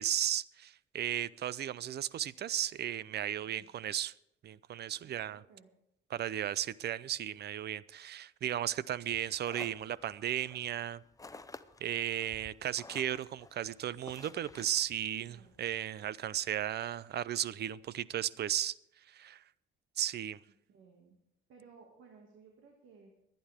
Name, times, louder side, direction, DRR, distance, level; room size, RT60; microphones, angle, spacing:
voice 1, 0.0-4.1 4.4-5.4 6.1-11.0 11.8-18.7 19.1-19.4 20.0-20.4, right 11 dB, 55° right, 0.5 m, -35 dB
voice 2, 5.0-5.7 15.3-15.5 20.7-21.2 21.5-23.2, right 5 dB, 80° right, 2.2 m, -59 dB
sound 1, 9.0-15.8, left 3 dB, 15° left, 0.7 m, -53 dB
23.5 x 9.4 x 3.6 m
cardioid pair, 90°, 20 cm